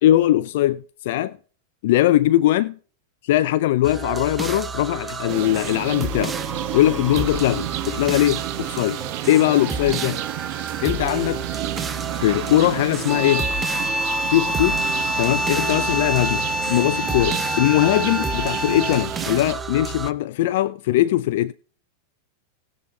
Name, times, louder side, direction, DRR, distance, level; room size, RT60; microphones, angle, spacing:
voice 1, 0.0-1.4 1.8-2.7 3.2-6.3 6.7-10.2 10.8-11.5 12.1-13.5 14.3-14.8 15.2-21.5, left 14 dB, 65° left, 0.4 m, -20 dB
sound 1, 3.8-20.1, right 4 dB, 15° right, 0.7 m, -31 dB
sound 2, 5.3-19.5, right 15 dB, 60° right, 0.9 m, -31 dB
sound 3, 13.0-19.3, left 1 dB, 10° left, 1.8 m, -26 dB
18.5 x 7.0 x 2.7 m
hypercardioid pair, 125°, 0 cm